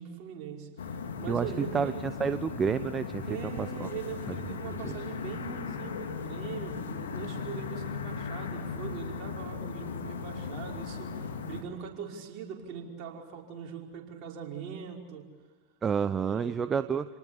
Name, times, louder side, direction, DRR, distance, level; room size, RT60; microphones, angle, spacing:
voice 1, 0.0-2.0 3.3-15.2 16.2-16.6, right 7 dB, 45° right, 0 dB, 5.4 m, -41 dB
sound 1, 0.8-11.6, left 5 dB, 75° left, 2.6 m, -37 dB
voice 2, 1.3-3.3 3.6-3.9 4.3-4.4 4.8-4.9 15.8-17.1, right 6 dB, 25° right, 12 dB, 0.8 m, -29 dB
28.5 x 19.0 x 8.5 m, 1.4 s
hypercardioid pair, 95°, 0 cm